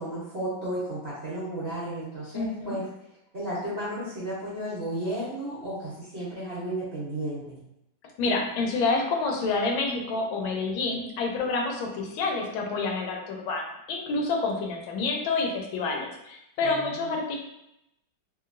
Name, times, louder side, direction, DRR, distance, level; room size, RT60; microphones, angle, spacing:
voice 1, 0.0-2.8 3.3-7.6 16.6-16.8, right 1 dB, 45° right, -10 dB, 0.8 m, -33 dB
voice 2, 2.3-2.8 8.2-13.6 13.9-17.4, left 3 dB, 85° left, 1 dB, 1.4 m, -28 dB
2.9 x 2.9 x 2.5 m, 0.83 s
omnidirectional pair, 2.1 m